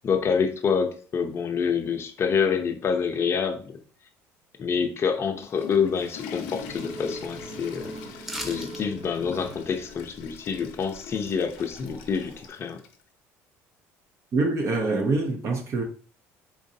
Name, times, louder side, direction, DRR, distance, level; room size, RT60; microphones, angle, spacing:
voice 1, 0.0-3.7 4.6-7.9 8.4-12.8, left 6 dB, 40° left, 0.6 m, -27 dB
Water / Toilet flush, 5.2-13.0, left 7 dB, 85° left, 0.6 m, -43 dB
sound 1, 6.5-12.5, right 1 dB, 65° right, 1.2 m, -42 dB
sound 2, 8.2-8.8 9.2-9.3, equal, 5° right, 0.8 m, -35 dB
voice 2, 14.3-15.8, right 3 dB, 45° right, 0.6 m, -25 dB
3.8 x 3.1 x 2.7 m
supercardioid pair, 85°, 7 cm